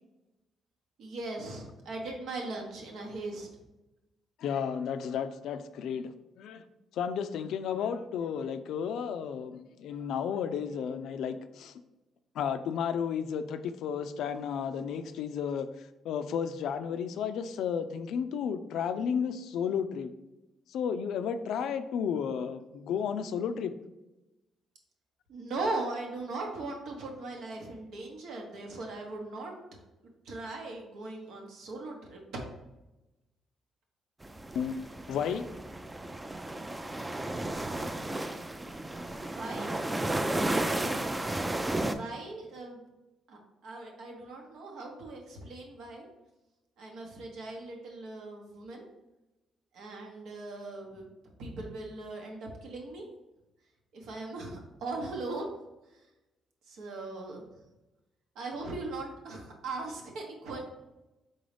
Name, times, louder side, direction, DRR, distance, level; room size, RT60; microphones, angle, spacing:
voice 1, 1.0-3.5 25.3-29.5 30.2-32.2 39.3-39.7 41.2-42.8 43.3-46.1 46.8-48.9 49.7-51.1 51.4-53.1 53.9-55.5 56.7-57.4 58.3-60.6, right 2 dB, 80° right, 1 dB, 1.0 m, -39 dB
voice 2, 4.4-6.6 6.9-11.8 12.3-20.1 20.7-23.7 34.5-34.8 35.1-35.5, left 7 dB, 80° left, 10 dB, 0.3 m, -33 dB
sound 1, 34.2-41.9, right 1 dB, 15° right, 0.4 m, -33 dB
3.9 x 3.8 x 3.3 m, 1.0 s
cardioid pair, 90°, 0 cm